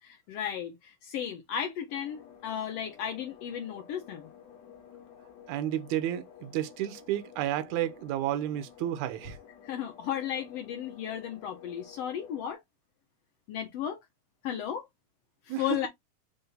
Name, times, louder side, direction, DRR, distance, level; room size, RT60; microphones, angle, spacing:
voice 1, 0.0-4.3 9.6-12.6 13.5-14.0 14.4-14.9 15.4-15.9, left 9 dB, 85° left, 1.4 m, -34 dB
sound 1, 1.9-12.5, left 8 dB, 65° left, 1.9 m, -52 dB
voice 2, 5.5-9.4 15.5-15.9, right 12 dB, 75° right, 1.9 m, -31 dB
5.1 x 2.6 x 3.9 m
omnidirectional pair, 4.0 m